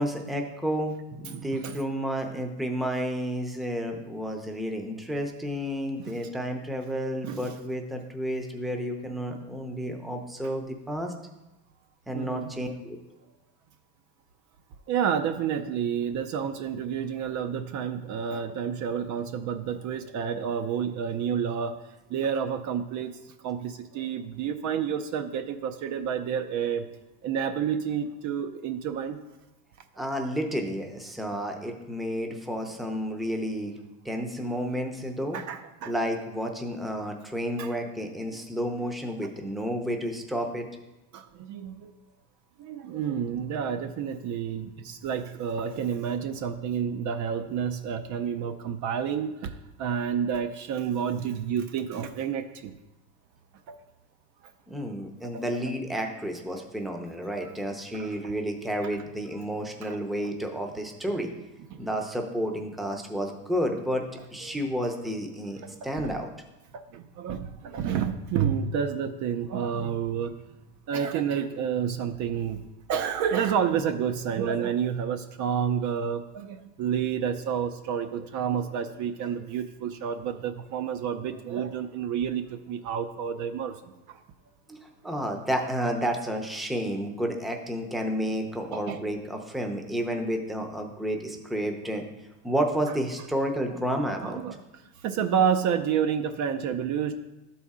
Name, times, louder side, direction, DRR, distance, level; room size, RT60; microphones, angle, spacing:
voice 1, 0.0-11.1 12.1-13.0 30.0-33.8 34.0-35.4 35.9-40.7 54.7-61.3 61.8-64.0 64.3-66.3 84.7-92.0 92.4-94.4, equal, ahead, 3 dB, 0.7 m, -31 dB
voice 2, 1.3-1.8 6.0-6.3 7.2-7.5 12.1-12.5 14.9-21.8 22.1-23.2 23.4-26.9 27.2-29.2 35.3-35.9 37.6-37.7 38.3-38.4 39.2-39.3 41.1-41.9 42.6-52.7 53.7-53.8 55.3-55.4 58.0-58.3 59.8-60.0 61.7-61.8 65.6-66.1 66.7-70.4 70.9-72.6 72.9-83.8 84.1-84.2 88.7-89.0 94.2-94.6 95.0-97.1, right 8 dB, 45° right, 9 dB, 0.6 m, -29 dB
12.0 x 4.2 x 3.6 m, 0.99 s
supercardioid pair, 120°, 41 cm